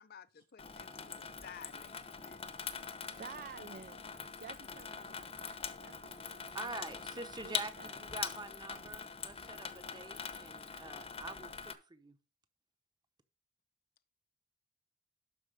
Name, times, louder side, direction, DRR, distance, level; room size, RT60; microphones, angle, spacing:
voice 1, 0.0-2.4, left 8 dB, 50° left, 0.5 m, -55 dB
Water tap faucet / Sink (filling or washing), 0.6-11.7, left 6 dB, 30° left, 0.9 m, -43 dB
voice 2, 3.1-4.0 4.4-6.9 7.4-8.0, right 5 dB, 45° right, 0.4 m, -52 dB
voice 3, 6.3-12.2, right 3 dB, 20° right, 1.0 m, -46 dB
12.0 x 4.6 x 6.6 m
head